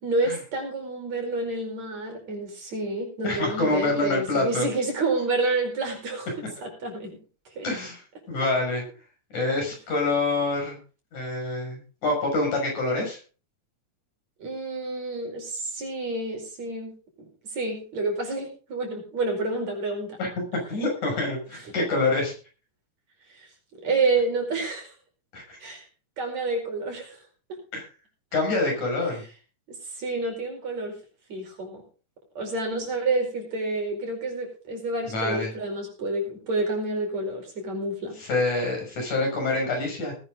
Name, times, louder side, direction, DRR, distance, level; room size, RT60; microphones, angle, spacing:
voice 1, 0.0-6.3 6.6-7.2 7.6-7.7 14.4-16.9 17.5-20.2 23.3-23.5 23.8-24.9 25.6-25.8 26.2-27.2 27.5-27.6 29.7-31.0 31.3-31.8 32.4-38.2, right 2 dB, 60° right, 2 dB, 6.1 m, -29 dB
voice 2, 3.2-4.7 7.6-8.8 9.3-10.8 11.1-13.2 20.2-22.3 25.3-25.6 27.7-27.9 28.3-29.2 35.1-35.5 38.2-40.1, left 2 dB, 65° left, 1 dB, 7.4 m, -26 dB
19.5 x 10.0 x 3.8 m, 0.36 s
omnidirectional pair, 3.6 m